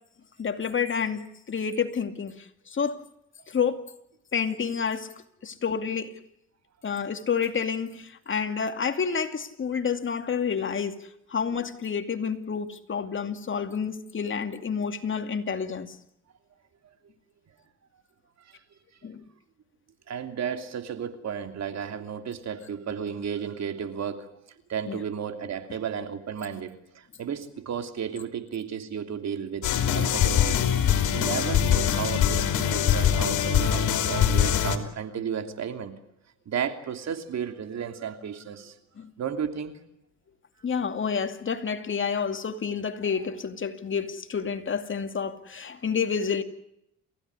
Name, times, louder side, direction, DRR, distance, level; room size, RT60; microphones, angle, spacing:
voice 1, 0.4-3.0 3.5-3.8 4.3-5.1 5.4-6.2 6.8-15.9 19.0-19.2 24.9-25.0 39.0-39.1 40.6-46.4, left 6 dB, 40° left, 2.5 m, -29 dB
voice 2, 20.1-24.3 24.7-30.6 30.9-35.9 36.5-38.7 39.2-39.8, right 7 dB, 60° right, 3.0 m, -33 dB
sound 1, 29.6-34.8, left 9 dB, 80° left, 3.0 m, -23 dB
29.0 x 16.0 x 9.8 m
cardioid pair, 90°, 30 cm